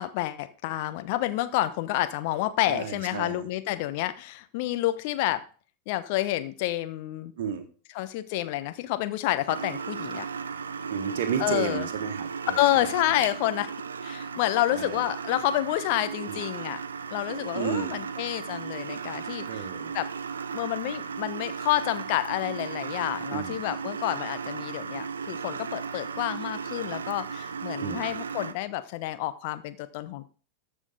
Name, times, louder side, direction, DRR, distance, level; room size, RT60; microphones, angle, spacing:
voice 1, 0.0-5.5 5.9-7.3 7.9-10.3 11.4-11.9 12.6-13.7 14.0-16.8 17.1-19.6 19.9-20.1 20.5-30.2, left 15 dB, 50° left, 12 dB, 0.9 m, -29 dB
voice 2, 2.7-3.4 7.4-7.7 10.9-12.6 13.2-13.3 14.7-15.0 16.3-16.4 17.5-18.0 19.4-20.0 23.3-23.6 27.8-28.1, right 8 dB, 60° right, 6 dB, 1.6 m, -32 dB
sound 1, 9.5-28.5, right 6 dB, 75° right, 0.5 m, -36 dB
13.5 x 6.3 x 3.9 m, 0.40 s
figure-of-eight pair, 90°, 0 cm